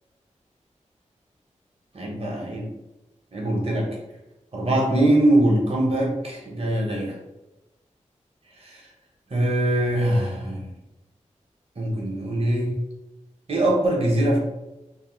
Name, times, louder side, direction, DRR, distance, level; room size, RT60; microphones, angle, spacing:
voice 1, 1.9-2.7 3.3-3.9 4.5-7.2 8.6-8.9 9.3-10.7 11.8-12.8 13.5-14.4, right 1 dB, 50° right, -2 dB, 0.8 m, -22 dB
2.6 x 2.1 x 3.0 m, 0.98 s
cardioid pair, 45°, 13 cm